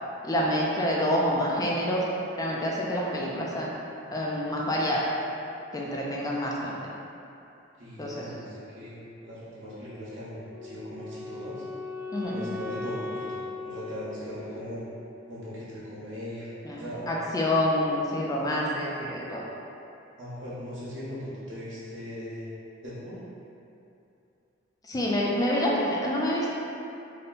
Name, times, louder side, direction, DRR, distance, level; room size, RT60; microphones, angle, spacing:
voice 1, 0.2-2.0 2.4-3.7 4.1-5.1 5.7-6.8 8.0-8.3 12.1-12.4 16.6-19.4 24.9-26.5, left 1 dB, 20° left, -4 dB, 0.4 m, -27 dB
voice 2, 7.8-11.6 12.2-14.8 15.3-16.5 16.8-17.0 20.2-22.5 22.8-23.2, equal, 75° right, -10 dB, 1.2 m, -39 dB
Wind instrument woodwind instrument, 10.5-15.5, left 3 dB, 45° right, 0.6 m, -39 dB
3.7 x 2.2 x 3.9 m, 2.7 s
head